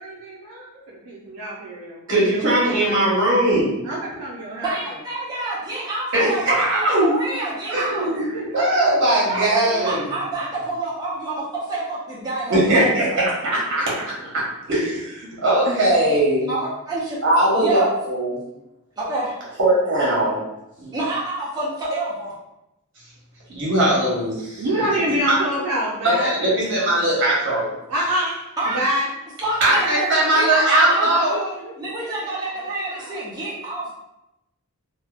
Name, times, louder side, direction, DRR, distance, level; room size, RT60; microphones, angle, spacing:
voice 1, 0.0-3.0 3.8-5.0 8.2-8.8 9.7-10.1 15.2-15.4 15.7-15.8 24.6-27.0 27.9-28.4 28.6-29.1 31.0-33.3, equal, 75° right, -3 dB, 0.4 m, -28 dB
voice 2, 2.1-3.8 6.1-7.2 7.7-10.1 12.5-13.9 14.7-16.5 17.2-18.4 19.6-20.4 20.8-20.9 23.5-24.6 25.3-25.4 26.0-27.7 29.6-31.4, right 1 dB, 55° right, -6 dB, 1.0 m, -19 dB
voice 3, 4.6-8.1 9.3-12.9 16.5-17.2 17.6-17.9 19.0-19.3 20.9-22.3 28.6-28.8 29.4-31.4 31.8-33.9, right 2 dB, 15° right, -8 dB, 0.5 m, -27 dB
2.7 x 2.0 x 2.4 m, 0.89 s
head